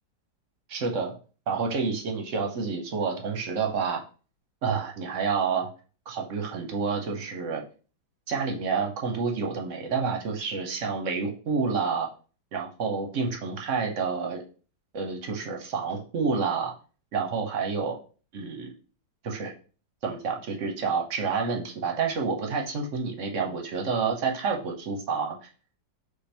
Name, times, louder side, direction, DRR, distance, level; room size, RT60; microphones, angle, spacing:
voice 1, 0.7-1.1 1.5-4.0 4.6-5.7 6.1-7.6 8.3-12.1 12.5-14.4 14.9-16.7 17.1-18.0 18.3-18.7 19.2-19.5 20.0-25.4, right 5 dB, 55° right, 2 dB, 0.9 m, -29 dB
4.5 x 2.6 x 4.3 m, 0.37 s
omnidirectional pair, 1.9 m